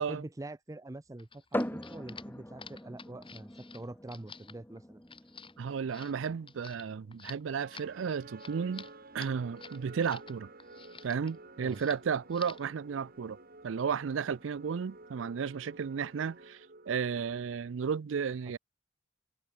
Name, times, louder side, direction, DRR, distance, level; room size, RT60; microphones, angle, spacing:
voice 1, 0.0-5.0 11.6-11.8, right 2 dB, 15° right, 0.5 m, -45 dB
sound 1, 1.2-10.3 10.6-11.4 11.7-12.0 12.3-12.7, left 5 dB, 25° left, 4.2 m, -50 dB
sound 2, 1.5-15.0, left 1 dB, 10° left, 1.6 m, -44 dB
voice 2, 5.6-8.9 9.1-10.5 11.0-13.4 13.6-18.6, right 6 dB, 70° right, 0.4 m, -33 dB
sound 3, 7.5-17.7, right 2 dB, 50° right, 5.2 m, -52 dB
head